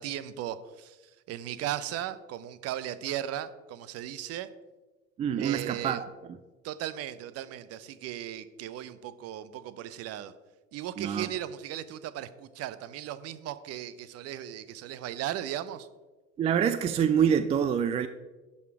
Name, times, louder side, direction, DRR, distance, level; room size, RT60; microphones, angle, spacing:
voice 1, 0.0-4.5 5.4-6.0 6.6-10.3 10.7-15.9, right 11 dB, 35° right, 14 dB, 0.7 m, -37 dB
voice 2, 5.2-6.1 11.0-11.3 16.4-18.1, right 8 dB, 15° right, 11 dB, 0.3 m, -26 dB
11.0 x 6.4 x 4.7 m, 1.2 s
figure-of-eight pair, 70°, 40 cm